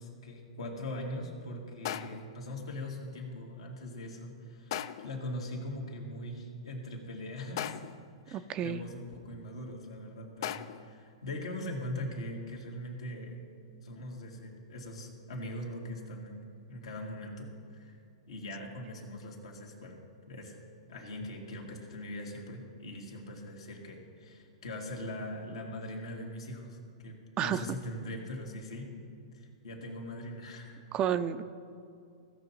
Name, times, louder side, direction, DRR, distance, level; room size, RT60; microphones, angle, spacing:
voice 1, 0.0-7.8 8.3-13.4 13.8-18.0 18.3-20.0 20.3-20.6 20.9-26.8 27.0-28.9 29.3-30.8, left 1 dB, 80° left, 0 dB, 2.0 m, -41 dB
sound 1, 1.9-2.4 4.7-5.2 7.6-8.1 10.4-10.9, left 10 dB, 60° left, 0.4 m, -38 dB
voice 2, 8.3-8.8 27.4-27.6 30.9-31.4, right 9 dB, 30° right, 12 dB, 0.4 m, -30 dB
16.0 x 6.0 x 4.1 m, 2.4 s
hypercardioid pair, 110°, 3 cm